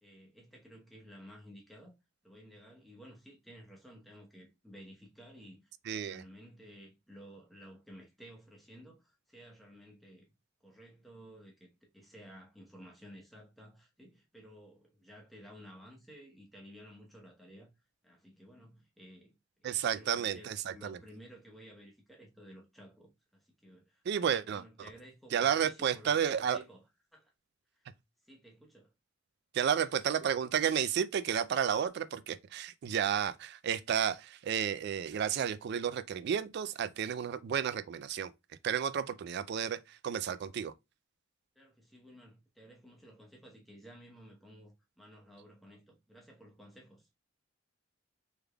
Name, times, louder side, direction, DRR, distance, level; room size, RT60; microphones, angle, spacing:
voice 1, 0.0-1.9 2.2-10.3 10.6-17.7 18.0-26.8 27.1-27.3 27.8-27.9 28.3-28.9 41.6-47.1, equal, ahead, 0.9 m, -54 dB
voice 2, 5.9-6.2 19.6-21.0 24.1-24.6 25.3-26.6 29.5-38.3 38.6-40.7, right 8 dB, 55° right, 0.3 m, -32 dB
3.4 x 3.3 x 2.2 m
head